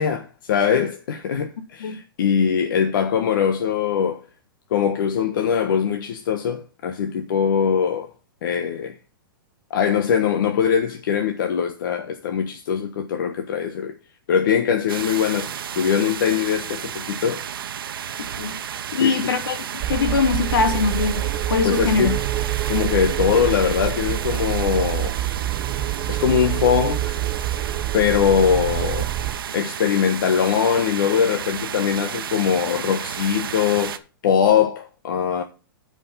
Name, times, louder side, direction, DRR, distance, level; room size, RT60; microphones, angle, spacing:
voice 1, 0.0-4.2 4.7-8.1 8.4-8.9 9.7-13.9 14.3-17.4 19.0-19.3 21.6-22.2 22.7-25.2 26.1-27.2 27.9-29.1 29.5-35.4, left 7 dB, 65° left, 1.2 m, -22 dB
sound 1, 14.9-34.0, right 9 dB, 85° right, 1.0 m, -32 dB
voice 2, 18.9-21.2 21.5-22.1, left 5 dB, 85° left, 2.3 m, -22 dB
sound 2, 19.8-29.4, right 13 dB, 30° right, 0.7 m, -26 dB
9.5 x 5.1 x 6.8 m
hypercardioid pair, 155°, 12 cm